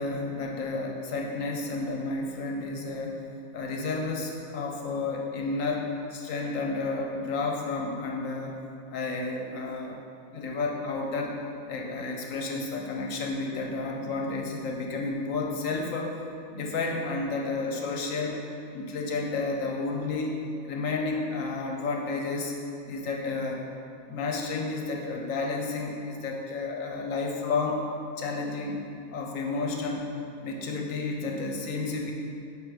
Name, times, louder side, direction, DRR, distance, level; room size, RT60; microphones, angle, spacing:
voice 1, 0.0-3.2 3.5-8.5 8.9-10.0 10.3-11.4 11.7-16.2 16.5-18.4 18.7-20.4 20.6-22.5 22.9-23.6 24.1-27.8 28.2-28.8 29.1-30.1 30.4-32.1, left 3 dB, 80° left, 0 dB, 1.2 m, -31 dB
5.4 x 5.1 x 4.8 m, 2.5 s
omnidirectional pair, 1.4 m